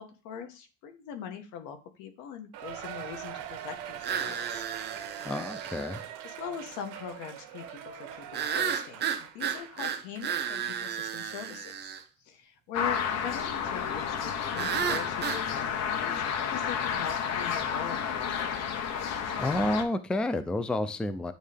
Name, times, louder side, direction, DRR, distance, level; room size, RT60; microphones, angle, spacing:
voice 1, 0.0-4.6 6.2-11.9 12.2-15.6 15.9-18.5, left 8 dB, 75° left, 1.3 m, -42 dB
Cheering, 2.5-10.3 10.7-10.8 11.5-11.6, right 10 dB, 70° right, 1.1 m, -42 dB
sound 1, 4.0-6.0 8.3-12.0 14.6-15.4, right 8 dB, 35° right, 0.7 m, -33 dB
voice 2, 5.2-6.0 19.4-21.3, left 1 dB, 5° left, 0.3 m, -30 dB
sound 2, 12.7-19.8, left 7 dB, 60° left, 1.0 m, -31 dB
9.4 x 3.2 x 3.4 m
cardioid pair, 130°, 30 cm